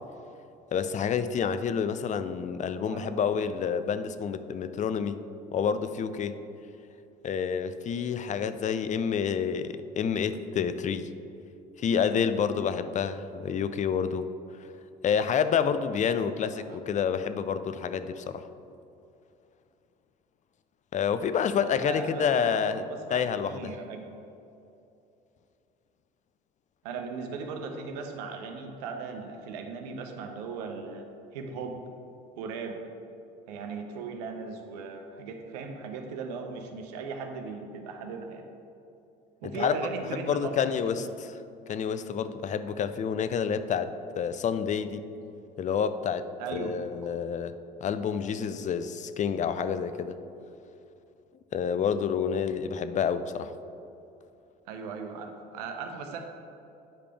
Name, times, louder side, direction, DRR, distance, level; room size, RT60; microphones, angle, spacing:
voice 1, 0.7-5.2 5.5-6.4 7.2-11.1 11.8-14.3 15.0-18.4 20.9-22.8 23.1-23.7 39.4-39.7 40.3-41.3 41.7-45.0 45.6-47.5 47.8-50.2 51.5-53.5, left 7 dB, 35° left, 12 dB, 0.4 m, -28 dB
voice 2, 2.8-3.3 16.2-16.8 21.6-24.0 26.8-31.1 31.3-31.8 32.4-32.9 33.5-38.5 39.4-40.6 41.0-41.1 46.4-46.7 54.7-56.2, right 5 dB, 80° right, 4 dB, 0.8 m, -38 dB
8.8 x 5.0 x 3.4 m, 2.7 s
hypercardioid pair, 60°, 21 cm